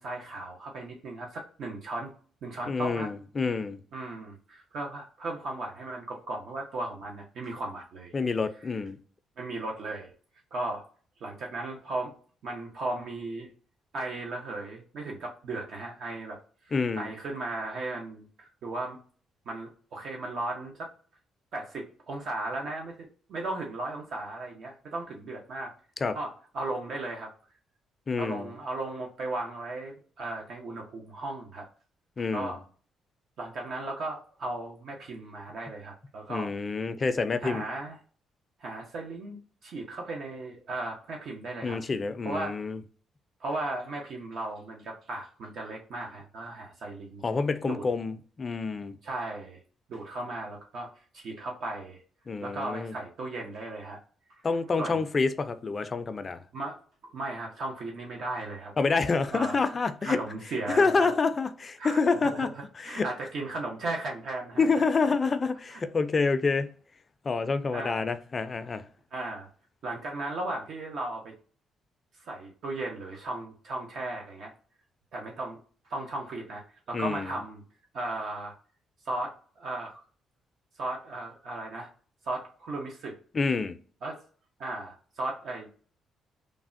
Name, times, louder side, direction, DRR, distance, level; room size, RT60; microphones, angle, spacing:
voice 1, 0.0-2.1 2.4-3.1 3.9-8.1 9.4-10.1 10.5-10.8 11.2-12.1 12.4-13.5 13.9-16.4 16.6-19.0 19.5-20.9 21.5-25.7 26.1-27.3 28.2-31.7 32.3-32.6 33.4-36.5 37.4-38.0 38.6-39.4 39.6-41.8 42.2-42.6 43.4-47.2 47.6-47.8 49.0-49.6 49.9-50.9 51.1-52.0 52.4-54.0 54.8-55.0 56.5-58.7 59.3-59.7 60.0-61.1 61.8-62.5 62.8-64.7 67.7-68.0 69.1-69.5 69.8-71.3 72.2-74.5 75.1-75.6 75.8-77.6 77.9-78.5 79.0-80.0 80.8-81.9 82.2-83.2 84.0-84.2 84.6-85.7, right 2 dB, 70° right, 0.6 m, -36 dB
voice 2, 2.7-3.8 8.1-9.0 16.7-17.1 26.0-26.2 28.1-28.5 32.2-32.6 36.3-37.7 41.6-42.8 47.2-49.0 52.3-52.9 54.4-56.4 58.8-60.2 60.7-62.5 62.8-63.1 64.6-66.7 67.2-68.8 76.9-77.3 83.3-83.8, left 4 dB, 35° left, 0.4 m, -27 dB
3.3 x 2.1 x 2.5 m
cardioid pair, 90°, 0 cm